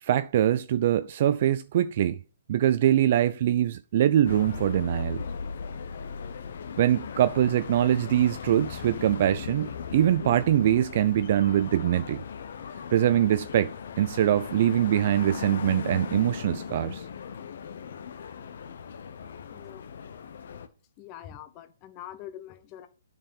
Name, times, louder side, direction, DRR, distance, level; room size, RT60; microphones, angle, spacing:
voice 1, 0.0-2.2 2.5-5.2 6.8-12.2 12.9-17.0, right 11 dB, 45° right, 0.4 m, -23 dB
sound 1, 4.2-20.7, left 6 dB, 60° left, 1.0 m, -38 dB
voice 2, 19.5-19.8 21.0-22.9, left 11 dB, 30° left, 1.1 m, -44 dB
8.9 x 5.3 x 5.6 m
figure-of-eight pair, 135°, 0 cm